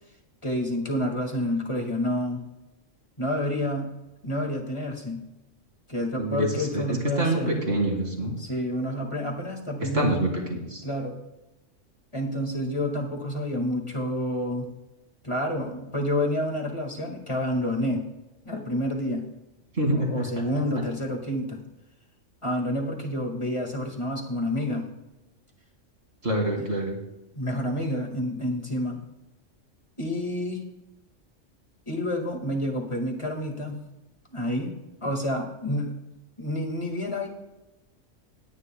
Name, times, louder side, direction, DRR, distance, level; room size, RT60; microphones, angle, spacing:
voice 1, 0.4-2.4 3.2-3.9 4.2-5.2 5.9-7.6 8.4-10.3 10.8-11.2 12.1-14.7 15.2-18.0 18.4-19.2 19.9-21.6 22.4-24.9 26.6-26.7 27.4-29.0 30.0-30.6 31.9-33.8 34.3-34.7 35.0-36.0 36.4-37.3, left 1 dB, 25° left, 2 dB, 1.8 m, -29 dB
voice 2, 6.2-8.3 9.9-10.8 19.7-20.4 26.2-27.0, right 1 dB, 55° right, 0 dB, 2.8 m, -26 dB
19.0 x 9.7 x 2.3 m, 0.96 s
omnidirectional pair, 1.3 m